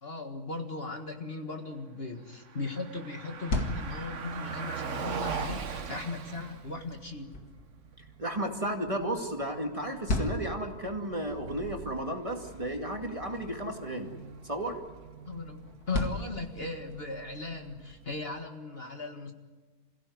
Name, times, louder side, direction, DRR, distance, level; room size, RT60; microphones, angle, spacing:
voice 1, 0.0-7.3 15.3-19.3, left 3 dB, 40° left, 4 dB, 1.9 m, -38 dB
Car passing by, 2.2-18.4, right 5 dB, 55° right, 1.5 m, -42 dB
sound 1, 3.2-17.2, left 2 dB, 80° left, 2.6 m, -40 dB
voice 2, 8.2-14.1 14.4-14.8, right 1 dB, 20° right, 2 dB, 2.4 m, -33 dB
28.0 x 16.5 x 9.6 m, 1.3 s
omnidirectional pair, 1.6 m